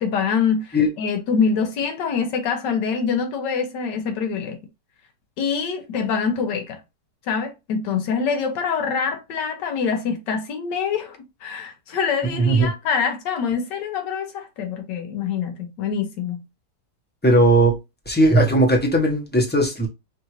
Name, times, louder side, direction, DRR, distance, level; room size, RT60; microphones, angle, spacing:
voice 1, 0.0-4.6 5.4-6.8 7.3-16.4, left 6 dB, 85° left, 1.5 m, -25 dB
voice 2, 12.3-12.7 17.2-17.8 18.1-19.9, right 1 dB, 10° left, 0.8 m, -17 dB
5.3 x 2.5 x 3.0 m
omnidirectional pair, 1.8 m